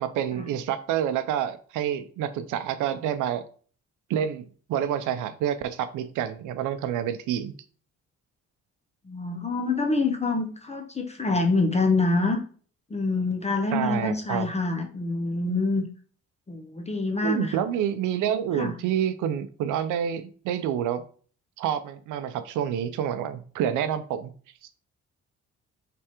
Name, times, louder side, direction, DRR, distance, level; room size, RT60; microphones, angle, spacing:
voice 1, 0.0-3.4 4.1-7.5 13.7-14.5 17.2-21.0 21.6-24.3, right 9 dB, 90° right, 11 dB, 0.5 m, -28 dB
voice 2, 9.1-12.4 12.9-15.8 16.5-17.5 18.6-18.7, left 3 dB, 20° left, 3 dB, 0.6 m, -26 dB
4.7 x 3.4 x 2.9 m, 0.43 s
cardioid pair, 90°, 30 cm